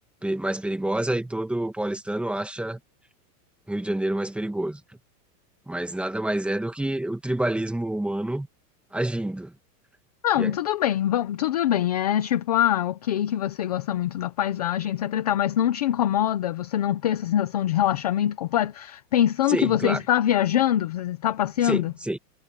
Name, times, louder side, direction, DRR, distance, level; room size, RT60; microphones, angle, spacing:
voice 1, 0.2-2.8 3.7-4.8 5.7-8.5 8.9-9.5 10.4-10.5 19.5-20.0 21.6-22.2, right 1 dB, ahead, 1.6 m, -28 dB
voice 2, 10.2-21.9, left 11 dB, 30° left, 0.3 m, -24 dB
supercardioid pair, 165°, 48 cm